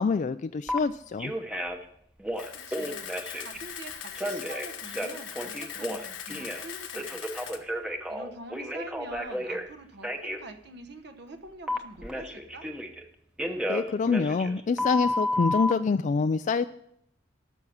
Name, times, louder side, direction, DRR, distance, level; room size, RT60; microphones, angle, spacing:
voice 1, 0.0-1.3 13.7-16.7, left 5 dB, 40° left, 11 dB, 0.3 m, -26 dB
Telephone, 0.7-0.8 1.2-1.8 2.2-3.6 4.2-6.6 6.9-9.7 10.0-10.4 11.7-13.0 13.4-15.7, left 1 dB, 5° right, 0.9 m, -32 dB
Camera, 2.4-7.6, left 8 dB, 75° left, 1.2 m, -40 dB
voice 2, 2.5-3.1 3.4-7.6 8.1-12.7, right 2 dB, 60° right, 8 dB, 1.1 m, -45 dB
12.5 x 6.1 x 7.1 m, 0.72 s
head